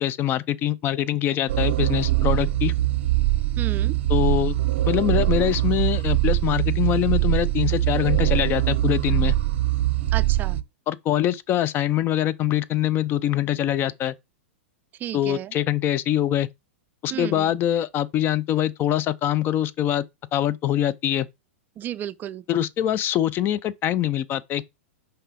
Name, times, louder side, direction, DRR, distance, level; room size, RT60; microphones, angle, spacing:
voice 1, 0.0-2.7 4.1-4.5 4.9-9.3 10.9-14.1 15.1-16.5 17.0-20.0 20.3-21.3 22.5-24.6, left 12 dB, 30° left, 0.5 m, -24 dB
sound 1, 1.5-10.6, right 16 dB, 60° right, 0.6 m, -22 dB
voice 2, 3.6-4.0 10.1-10.6 15.0-15.5 17.1-17.5 21.8-22.4, right 11 dB, 30° right, 0.4 m, -32 dB
5.5 x 5.5 x 3.7 m
hypercardioid pair, 110°, 7 cm